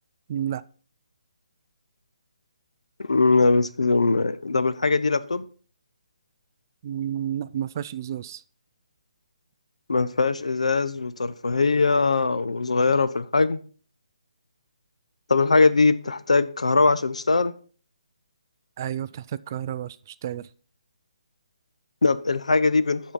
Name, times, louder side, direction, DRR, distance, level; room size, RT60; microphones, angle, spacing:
voice 1, 0.3-0.6 6.8-8.4 18.8-20.5, right 10 dB, 30° right, 0.3 m, -31 dB
voice 2, 3.0-5.4 9.9-13.6 15.3-17.5 22.0-23.0, left 3 dB, 90° left, 0.7 m, -21 dB
11.5 x 4.2 x 5.4 m
hypercardioid pair, 160°, 3 cm